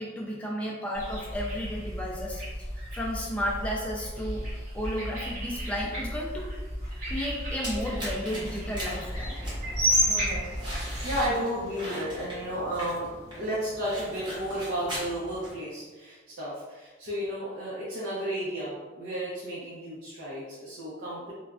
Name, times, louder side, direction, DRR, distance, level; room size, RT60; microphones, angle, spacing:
voice 1, 0.0-2.7 2.9-4.4 4.7-6.5 7.1-9.4, equal, 5° left, -3 dB, 0.4 m, -33 dB
sound 1, 0.9-11.3, equal, 40° right, 1.3 m, -32 dB
sound 2, 7.6-15.5, equal, 25° right, 0.8 m, -41 dB
voice 2, 10.0-10.5 11.0-13.1 13.4-21.3, equal, 75° right, -9 dB, 0.7 m, -33 dB
3.2 x 2.3 x 2.4 m, 1.3 s
head